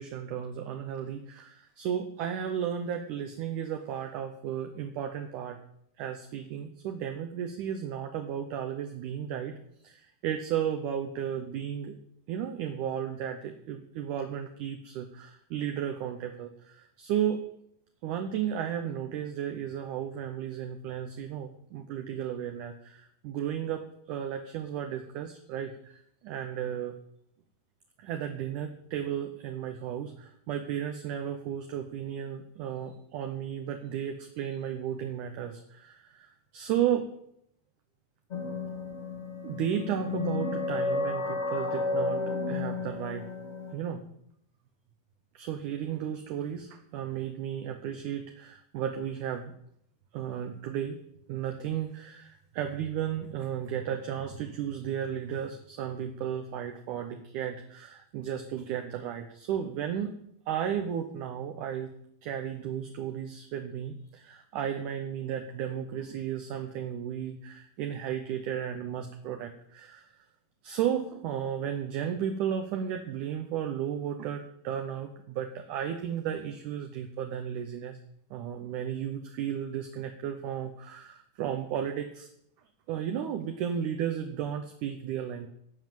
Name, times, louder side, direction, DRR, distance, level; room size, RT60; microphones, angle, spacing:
voice 1, 0.0-5.6 6.0-9.5 9.8-12.0 12.3-17.4 18.0-26.9 28.0-37.1 39.4-42.2 42.5-43.3 43.7-44.0 45.3-49.5 50.1-51.0 51.3-60.1 60.5-61.9 62.2-70.1 70.6-78.0 78.3-82.3 82.9-85.5, right 9 dB, 70° right, 5 dB, 2.1 m, -34 dB
sound 1, 38.3-43.7, left 3 dB, 30° left, 1.2 m, -32 dB
16.5 x 5.6 x 7.7 m, 0.73 s
omnidirectional pair, 4.3 m